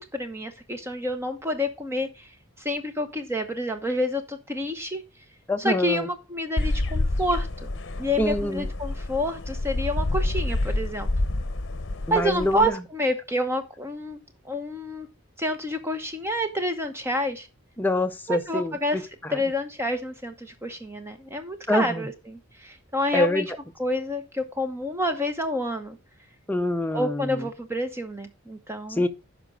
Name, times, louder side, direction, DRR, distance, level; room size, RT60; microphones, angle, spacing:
voice 1, 0.0-2.3 2.6-5.0 5.6-7.7 8.0-11.1 12.1-14.2 14.4-15.1 15.4-17.5 18.3-19.0 19.3-23.5 23.8-26.0 26.9-29.1, left 1 dB, 10° right, 0.9 m, -28 dB
voice 2, 5.5-6.1 8.2-8.7 12.1-12.8 17.8-19.4 21.7-22.1 23.1-23.5 26.5-27.5 28.9-29.1, left 1 dB, 10° left, 0.5 m, -25 dB
sound 1, 6.6-12.7, left 2 dB, 55° left, 0.8 m, -28 dB
12.5 x 5.1 x 3.7 m
head